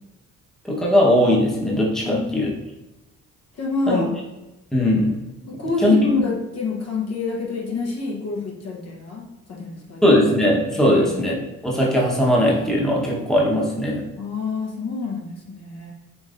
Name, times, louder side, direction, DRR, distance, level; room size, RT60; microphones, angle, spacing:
voice 1, 0.7-2.5 3.9-4.0 4.7-5.1 5.8-5.9 10.0-11.3 11.6-14.0, left 1 dB, ahead, -4 dB, 1.0 m, -19 dB
voice 2, 2.0-2.5 3.6-4.1 5.4-10.1 10.8-11.1 14.2-15.9, left 4 dB, 55° left, -2 dB, 1.0 m, -27 dB
5.2 x 3.1 x 2.5 m, 1.0 s
cardioid pair, 90°, 30 cm